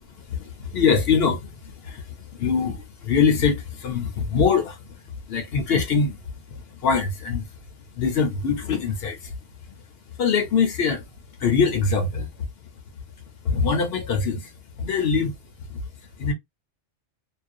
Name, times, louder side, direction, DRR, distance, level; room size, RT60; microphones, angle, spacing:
voice 1, 0.2-4.8 5.3-6.2 6.8-7.5 8.0-9.3 10.2-11.0 11.4-12.3 13.4-14.5 14.8-15.3 15.7-15.8 16.2-16.3, left 5 dB, 65° left, 0.8 m, -23 dB
2.5 x 2.0 x 2.4 m
omnidirectional pair, 1.2 m